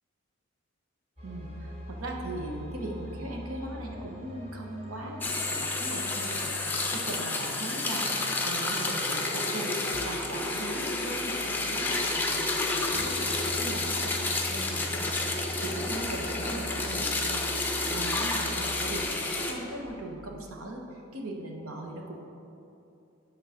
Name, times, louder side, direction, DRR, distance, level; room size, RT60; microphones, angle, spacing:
sound 1, 1.2-19.9, equal, 25° right, 1.4 m, -43 dB
voice 1, 1.2-5.2 5.5-6.5 6.9-8.1 8.4-19.2 19.5-22.2, right 1 dB, 80° right, 1 dB, 1.1 m, -39 dB
sound 2, 5.2-19.5, left 2 dB, 10° left, 0.5 m, -30 dB
9.5 x 3.8 x 6.4 m, 2.8 s
head